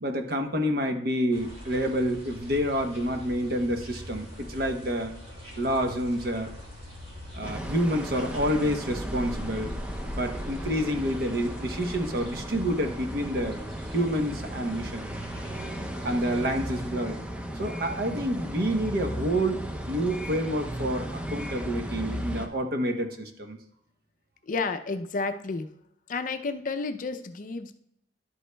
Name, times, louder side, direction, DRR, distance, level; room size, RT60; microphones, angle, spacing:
voice 1, 0.0-5.1 5.6-6.5 7.4-9.7 10.1-13.6 13.9-15.1 16.0-17.2 17.6-23.6, equal, 55° right, 6 dB, 0.8 m, -28 dB
sound 1, 1.3-16.9, equal, 35° right, 2.3 m, -42 dB
sound 2, 7.4-22.5, equal, 5° right, 0.5 m, -36 dB
voice 2, 24.5-25.7 26.1-27.7, left 3 dB, 45° left, 8 dB, 0.5 m, -31 dB
11.0 x 8.0 x 2.2 m, 0.71 s
head